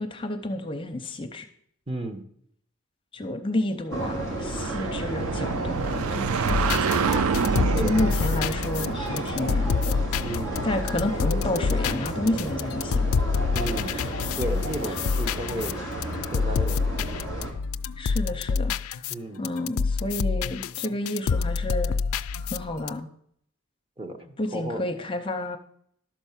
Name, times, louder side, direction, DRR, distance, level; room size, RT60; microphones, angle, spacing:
voice 1, 0.0-1.5 3.1-7.2 7.8-9.7 10.6-13.1 13.8-14.1 14.9-15.0 18.0-19.1 19.4-21.9 22.5-23.1 24.4-25.6, left 1 dB, 25° left, 6 dB, 0.7 m, -30 dB
voice 2, 1.9-2.2 7.6-8.0 10.2-10.7 13.5-13.9 14.4-15.8 16.3-16.8 19.1-19.4 24.0-24.8, right 1 dB, 25° right, 5 dB, 1.1 m, -33 dB
sound 1, 3.9-17.5, right 1 dB, 60° right, 2.4 m, -33 dB
sound 2, 4.3-10.9, right 6 dB, 90° right, 0.4 m, -29 dB
sound 3, 6.5-19.2 19.4-22.9, left 5 dB, 80° left, 0.4 m, -28 dB
12.0 x 4.5 x 7.2 m, 0.66 s
head